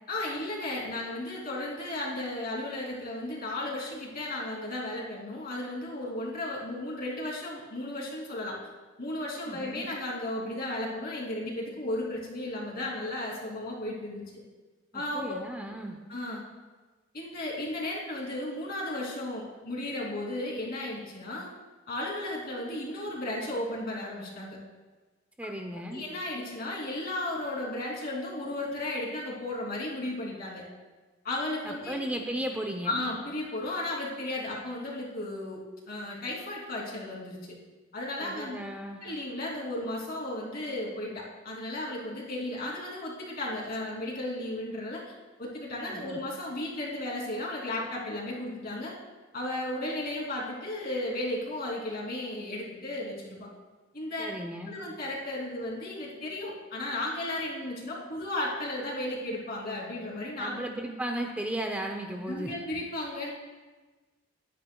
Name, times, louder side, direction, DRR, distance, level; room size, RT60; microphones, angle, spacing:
voice 1, 0.1-8.6 9.0-14.4 14.9-15.3 16.1-16.4 17.1-21.5 21.9-24.6 25.9-30.6 31.2-32.0 32.8-35.6 35.9-37.4 37.9-38.6 39.0-45.0 45.4-48.9 49.3-53.5 53.9-54.3 54.7-60.7 62.3-63.3, left 1 dB, 50° left, -3 dB, 3.0 m, -34 dB
voice 2, 9.5-9.9 14.9-16.0 25.4-26.0 31.6-32.9 38.2-39.0 45.8-46.2 54.2-54.7 60.4-62.5, right 1 dB, 10° right, 2 dB, 0.6 m, -35 dB
21.5 x 9.9 x 2.3 m, 1.3 s
head